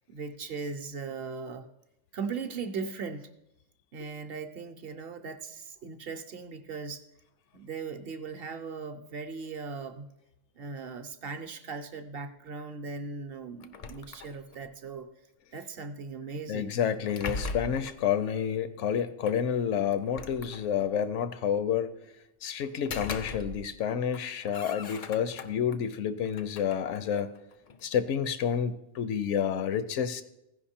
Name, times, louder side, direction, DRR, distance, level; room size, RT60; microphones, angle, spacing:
voice 1, 0.1-1.6 2.1-3.3 3.9-7.0 7.5-10.1 10.6-15.1 15.5-16.8, right 5 dB, 60° right, 7 dB, 0.8 m, -38 dB
sound 1, 13.6-14.7 16.7-18.0 19.3-19.4 19.9-21.0 22.6-23.8 24.1-25.8 26.3-27.9, left 4 dB, 60° left, 0.4 m, -40 dB
voice 2, 16.5-21.9 22.4-27.3 27.8-30.2, left 8 dB, 80° left, 12 dB, 1.0 m, -29 dB
15.5 x 5.2 x 4.3 m, 0.85 s
omnidirectional pair, 1.2 m